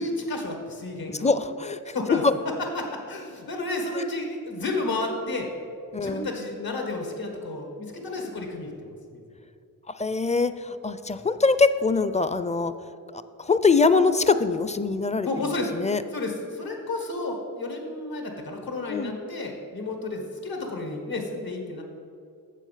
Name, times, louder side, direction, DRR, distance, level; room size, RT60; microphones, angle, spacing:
voice 1, 0.0-1.3 1.9-2.2 2.7-5.5 6.0-8.7 9.1-9.2 11.1-11.2 15.2-15.7 16.1-21.8, left 2 dB, 80° left, 2 dB, 1.7 m, -31 dB
voice 2, 1.1-2.3 3.9-4.1 5.9-6.3 9.9-12.7 13.1-16.0 18.9-19.1, left 4 dB, 20° left, 13 dB, 0.4 m, -23 dB
7.4 x 7.3 x 5.8 m, 2.4 s
cardioid pair, 50°, 35 cm